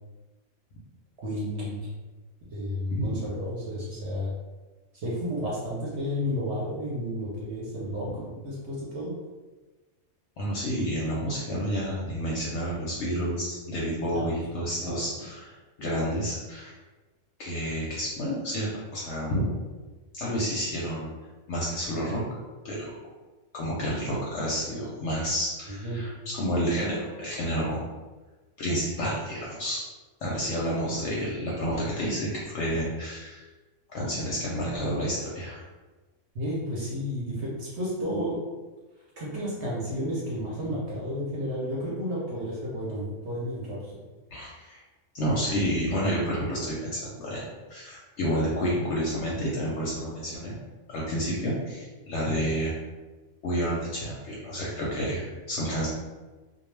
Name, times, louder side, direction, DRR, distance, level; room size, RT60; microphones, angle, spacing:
voice 1, 1.2-1.9 2.5-4.3 4.9-8.1 8.4-9.1 14.1-14.2 14.8-15.2 25.8-26.0 36.3-38.4 39.2-43.9, equal, 60° right, -6 dB, 0.9 m, -32 dB
voice 2, 10.4-15.5 15.8-16.7 17.4-19.5 20.1-21.1 21.5-22.2 22.6-22.9 23.5-27.9 28.6-29.8 30.2-33.4 33.9-35.6 44.3-44.8 45.1-50.6 50.9-52.7 53.4-55.9, equal, 65° left, -5 dB, 0.8 m, -30 dB
2.3 x 2.2 x 3.1 m, 1.2 s
omnidirectional pair, 1.4 m